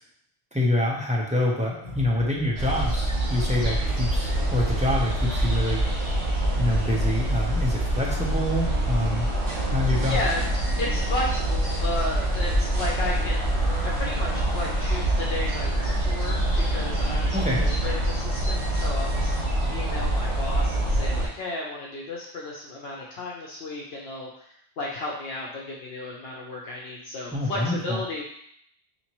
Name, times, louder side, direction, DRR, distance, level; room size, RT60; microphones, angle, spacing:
voice 1, 0.5-5.8 6.6-9.3 9.7-10.2 17.3-17.6 27.3-28.0, left 1 dB, 10° right, -4 dB, 0.5 m, -26 dB
sound 1, 1.8-4.3, equal, 55° left, 1.3 m, -42 dB
sound 2, 2.6-21.3, right 1 dB, 85° right, 1.3 m, -25 dB
sound 3, 3.3-19.5, right 1 dB, 60° right, 1.2 m, -42 dB
voice 2, 10.1-10.4 10.8-16.4 16.7-24.3 24.8-28.2, left 2 dB, 70° left, -3 dB, 0.9 m, -34 dB
4.3 x 2.8 x 3.0 m, 0.69 s
omnidirectional pair, 1.1 m